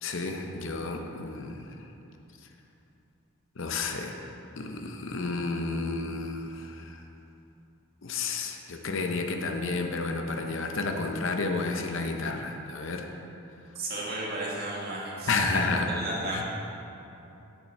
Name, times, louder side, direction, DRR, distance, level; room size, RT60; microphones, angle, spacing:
voice 1, 0.0-1.6 3.6-4.1 4.6-6.7 8.0-13.1 15.3-15.9 16.3-16.4, left 3 dB, 60° left, 4 dB, 0.6 m, -31 dB
voice 2, 13.7-16.4, right 1 dB, 45° right, -5 dB, 1.6 m, -34 dB
7.9 x 7.1 x 4.2 m, 2.8 s
head